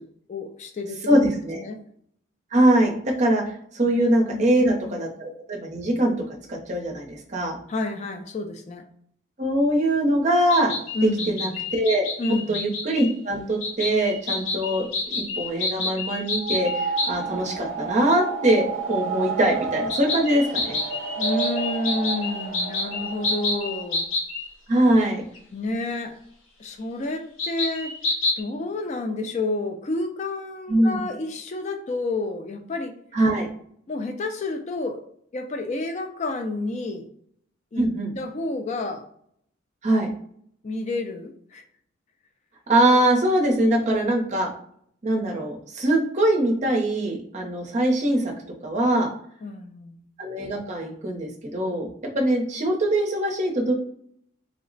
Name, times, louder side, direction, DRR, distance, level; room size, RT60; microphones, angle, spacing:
voice 1, 0.0-1.0 1.5-1.8 3.9-4.0 4.3-4.6 4.9-5.0 7.7-8.8 10.9-11.4 12.2-12.6 21.2-24.1 25.5-26.1 26.6-27.9 28.4-32.9 33.9-35.0 35.3-37.1 37.7-37.9 38.2-39.0 40.6-41.6 49.4-50.0, left 2 dB, 35° left, 6 dB, 0.3 m, -30 dB
voice 2, 1.1-1.6 2.5-2.9 3.2-6.1 6.5-7.6 9.4-10.8 11.0-20.8 24.7-25.2 30.7-31.0 33.1-33.5 37.8-38.1 39.8-40.1 42.7-44.5 45.0-48.3 48.6-49.1 50.2-51.9 52.1-53.7, right 1 dB, 35° right, 2 dB, 0.6 m, -22 dB
sound 1, 10.5-13.1 13.6-17.1 19.9-24.5 25.3-25.4 27.4-28.4, left 3 dB, 85° left, 0.8 m, -28 dB
sound 2, 16.3-24.0, right 5 dB, 80° right, 0.4 m, -31 dB
3.2 x 2.0 x 3.8 m, 0.65 s
head